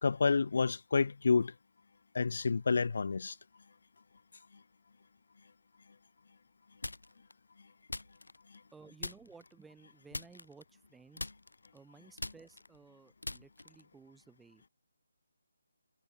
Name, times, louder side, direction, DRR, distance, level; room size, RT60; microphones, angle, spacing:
voice 1, 0.0-1.5 2.1-3.4, left 4 dB, 60° left, 1.1 m, -29 dB
sound 1, 6.8-7.3 7.9-8.7 9.0-9.5 10.1-10.9 11.2-14.0, left 2 dB, 90° left, 2.4 m, -43 dB
voice 2, 8.7-11.3 11.7-14.6, right 5 dB, 5° right, 2.0 m, -57 dB
figure-of-eight pair, 155°, 0 cm